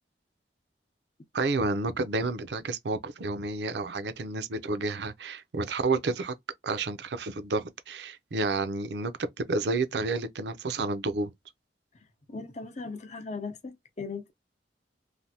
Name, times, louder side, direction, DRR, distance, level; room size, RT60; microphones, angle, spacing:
voice 1, 1.3-6.3 6.6-11.3, right 3 dB, 70° right, 0.5 m, -30 dB
voice 2, 12.3-14.3, left 4 dB, 40° left, 0.7 m, -38 dB
3.3 x 2.2 x 2.7 m
head